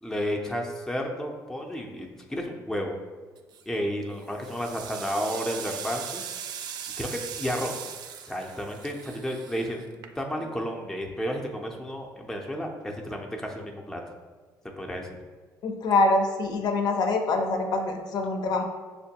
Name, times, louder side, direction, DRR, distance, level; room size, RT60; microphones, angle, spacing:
voice 1, 0.0-2.9 3.7-6.3 7.0-7.8 8.2-14.0 14.8-15.2, equal, 5° left, 1 dB, 0.5 m, -32 dB
sound 1, 3.4-3.8 4.2-10.5, right 8 dB, 70° right, 0.3 m, -39 dB
voice 2, 15.6-18.6, left 2 dB, 65° left, 4 dB, 0.5 m, -25 dB
6.2 x 2.2 x 2.8 m, 1.4 s
cardioid pair, 100°, 7 cm